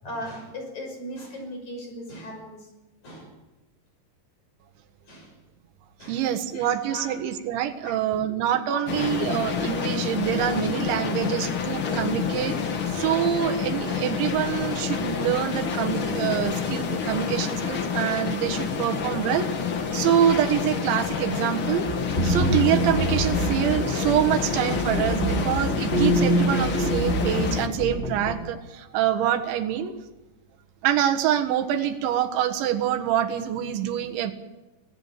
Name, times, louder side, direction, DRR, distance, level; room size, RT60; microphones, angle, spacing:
voice 1, 0.0-2.6 3.0-3.3 5.1-5.3 6.0-6.2 6.5-7.1 7.8-8.4 8.7-8.8, left 1 dB, 40° left, 3 dB, 7.1 m, -38 dB
voice 2, 6.1-12.6 12.9-21.9 22.2-29.9 30.8-34.3, right 10 dB, 90° right, 7 dB, 3.9 m, -25 dB
sound 1, 8.9-27.7, left 6 dB, 75° left, 1.1 m, -28 dB
sound 2, 21.9-28.3, right 1 dB, 15° left, 3.8 m, -26 dB
25.0 x 18.0 x 7.5 m, 1.1 s
omnidirectional pair, 5.1 m